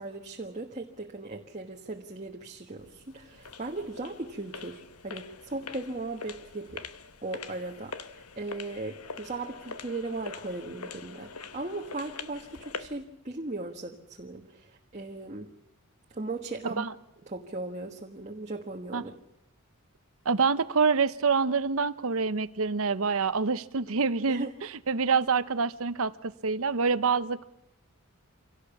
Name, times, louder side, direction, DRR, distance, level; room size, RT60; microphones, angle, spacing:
voice 1, 0.0-6.8 7.2-15.5 16.1-16.9 17.3-19.1 24.3-24.5, right 2 dB, 30° right, 1 dB, 1.5 m, -38 dB
sound 1, 2.8-13.0, left 5 dB, 80° left, 1.0 m, -44 dB
voice 2, 20.2-27.4, right 5 dB, 65° right, 14 dB, 0.8 m, -26 dB
26.0 x 17.5 x 7.2 m, 0.86 s
head